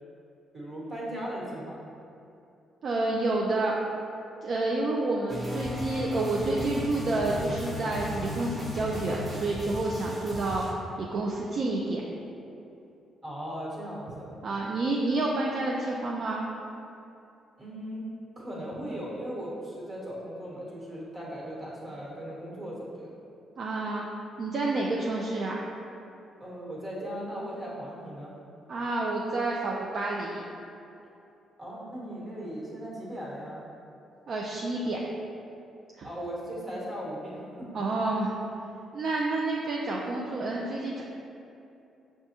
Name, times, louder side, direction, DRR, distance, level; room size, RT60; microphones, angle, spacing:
voice 1, 0.5-1.9 13.2-14.3 17.6-18.1 18.4-23.1 26.4-28.3 31.6-33.6 36.0-38.2, equal, 35° right, -6 dB, 1.3 m, -38 dB
voice 2, 2.8-3.7 4.4-12.0 14.4-16.4 23.6-24.1 24.4-25.6 28.7-30.4 34.3-35.0 36.0-36.1 37.7-38.3 38.9-41.0, right 2 dB, 55° right, -3 dB, 0.4 m, -29 dB
sound 1, 5.3-10.7, left 1 dB, 10° right, 0.9 m, -36 dB
6.0 x 2.2 x 2.8 m, 2.8 s
cardioid pair, 90°, 0 cm